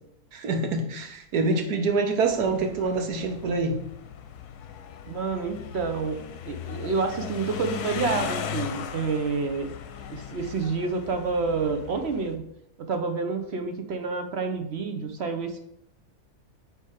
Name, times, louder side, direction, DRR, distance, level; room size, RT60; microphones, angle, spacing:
voice 1, 0.3-3.8, right 3 dB, 80° right, 4 dB, 1.6 m, -26 dB
sound 1, 2.3-12.4, left 8 dB, 80° left, 1.2 m, -38 dB
voice 2, 5.1-6.2 6.5-9.7 10.0-12.4 12.8-15.6, right 4 dB, 55° right, 6 dB, 0.8 m, -28 dB
8.8 x 3.3 x 4.9 m, 0.76 s
omnidirectional pair, 1.7 m